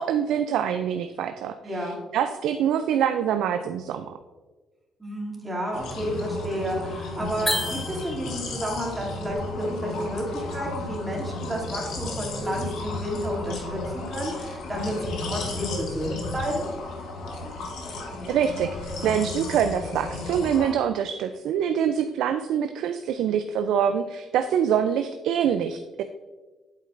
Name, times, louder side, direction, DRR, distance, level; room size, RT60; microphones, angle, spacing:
voice 1, 0.0-4.1 18.3-26.0, right 8 dB, 85° right, 8 dB, 0.3 m, -25 dB
voice 2, 1.6-2.0 5.0-16.7, equal, 15° right, -3 dB, 2.5 m, -31 dB
sound 1, 5.7-20.7, left 2 dB, 85° left, 1.1 m, -34 dB
sound 2, 7.4-8.6, left 1 dB, 10° left, 0.8 m, -30 dB
8.5 x 7.6 x 2.5 m, 1.3 s
cardioid pair, 100°, 0 cm